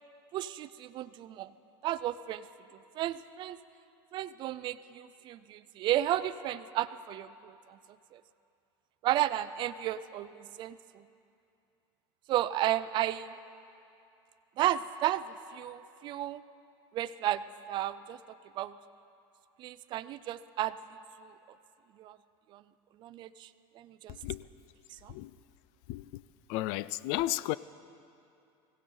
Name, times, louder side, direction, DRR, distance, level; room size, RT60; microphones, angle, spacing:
voice 1, 0.3-1.5 1.8-2.5 2.7-3.6 4.1-7.8 8.1-8.2 9.0-11.0 12.3-13.4 14.6-15.2 15.5-16.4 16.9-17.4 17.7-18.2 18.6-18.7 19.6-20.7 21.2-21.3 22.0-22.2 22.5-22.6 23.0-23.5 23.8-24.2 24.9-25.2, right 13 dB, 40° right, 0.4 m, -33 dB
voice 2, 24.1-24.5 25.1-25.4 25.9-26.2 26.5-27.6, left 16 dB, 60° left, 0.4 m, -33 dB
21.0 x 17.0 x 3.9 m
supercardioid pair, 150°, 13 cm